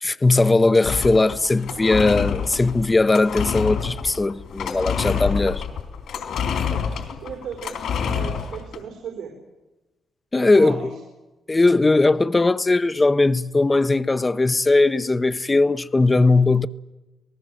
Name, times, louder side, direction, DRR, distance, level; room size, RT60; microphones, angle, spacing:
voice 1, 0.0-5.6 10.3-10.9 11.5-16.7, left 2 dB, 20° left, 0.7 m, -19 dB
sound 1, 0.8-8.8, left 7 dB, 75° left, 3.8 m, -27 dB
voice 2, 4.9-5.4 6.5-9.4 10.3-10.9, right 6 dB, 85° right, 4.5 m, -37 dB
27.5 x 19.0 x 7.7 m
cardioid pair, 110°, 0 cm